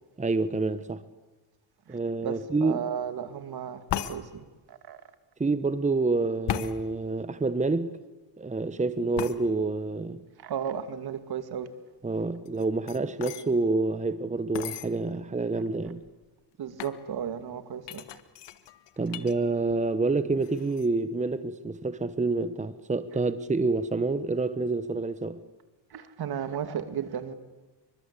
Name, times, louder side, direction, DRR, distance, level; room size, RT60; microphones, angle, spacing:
voice 1, 0.2-1.0 1.9-2.9 5.4-8.0 8.4-10.2 12.0-16.0 19.0-25.4, right 3 dB, 15° right, 1.2 m, -28 dB
voice 2, 2.2-5.0 10.4-11.7 16.6-18.0 19.1-19.2 25.9-27.3, right 8 dB, 60° right, 2.6 m, -34 dB
sound 1, 3.9-4.2 6.5-6.8 9.2-9.4 12.5-13.5 14.5-14.9 15.6-15.7 15.9-16.2 16.8-17.0 17.9-19.3 19.7-20.1 20.4-20.9, left 11 dB, 75° left, 1.7 m, -35 dB
29.0 x 24.0 x 8.4 m
cardioid pair, 100°, 42 cm